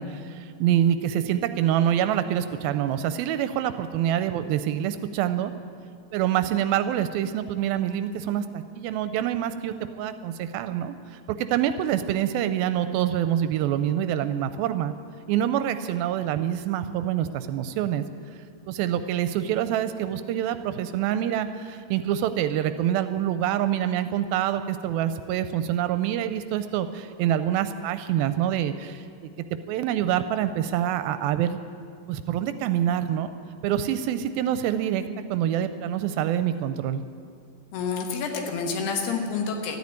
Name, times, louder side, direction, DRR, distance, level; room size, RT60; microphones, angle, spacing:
voice 1, 0.0-5.5 6.1-14.9 15.3-18.0 18.7-29.3 29.7-31.6 32.1-33.3 33.6-35.0 35.3-37.0, right 10 dB, 80° right, 11 dB, 2.2 m, -26 dB
voice 2, 37.7-39.8, left 5 dB, 90° left, 3 dB, 3.5 m, -28 dB
13.5 x 9.6 x 9.5 m, 2.3 s
omnidirectional pair, 4.5 m